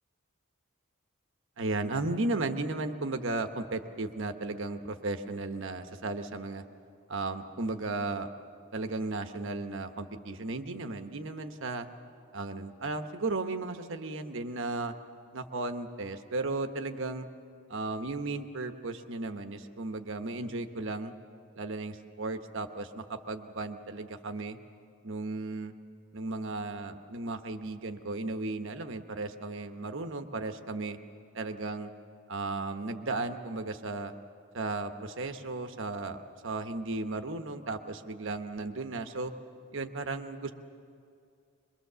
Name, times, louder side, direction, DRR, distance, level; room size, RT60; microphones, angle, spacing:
voice 1, 1.6-6.6 7.1-8.3 8.7-11.9 12.3-14.9 15.3-17.3 17.7-21.1 21.6-24.6 25.0-25.7 26.1-31.0 31.3-31.9 32.3-34.1 34.5-39.3 39.7-40.5, right 3 dB, 65° right, 8 dB, 1.1 m, -35 dB
23.5 x 22.5 x 6.9 m, 2.4 s
head